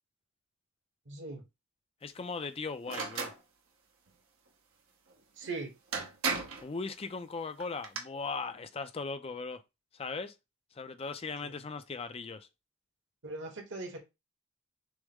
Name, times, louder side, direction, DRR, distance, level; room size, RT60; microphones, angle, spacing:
voice 1, 1.1-1.4 5.4-5.7 11.4-11.5 13.2-14.0, right 3 dB, 60° right, 1.2 m, -40 dB
voice 2, 2.0-3.3 6.6-9.6 9.9-10.3 10.7-12.5, left 4 dB, 30° left, 0.4 m, -38 dB
sound 1, 2.9-3.4 5.4-5.5 5.9-6.7 7.6-8.0, right 5 dB, 85° right, 1.1 m, -34 dB
6.2 x 2.1 x 3.5 m
head